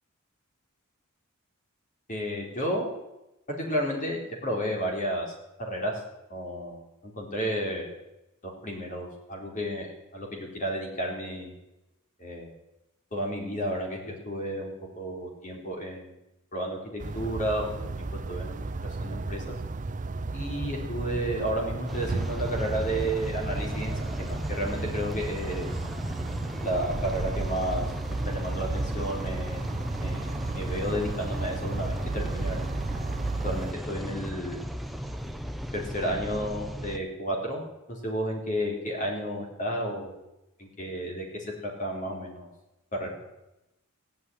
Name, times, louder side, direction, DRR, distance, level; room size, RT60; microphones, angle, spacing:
voice 1, 2.1-2.9 3.5-5.9 6.3-7.9 8.4-11.5 12.2-12.5 13.1-16.1 16.5-17.7 18.0-18.7 19.0-19.4 20.3-23.9 24.2-25.7 26.6-27.9 28.3-29.7 30.0-32.6 33.4-34.7 35.7-37.6 37.9-40.2 40.6-41.3 41.6-42.5 43.0-43.1, equal, 35° left, 0 dB, 4.1 m, -32 dB
sound 1, 17.0-33.7, right 3 dB, 35° right, 0.5 m, -34 dB
sound 2, 21.9-37.0, equal, ahead, 0.8 m, -36 dB
16.5 x 8.7 x 9.3 m, 0.94 s
head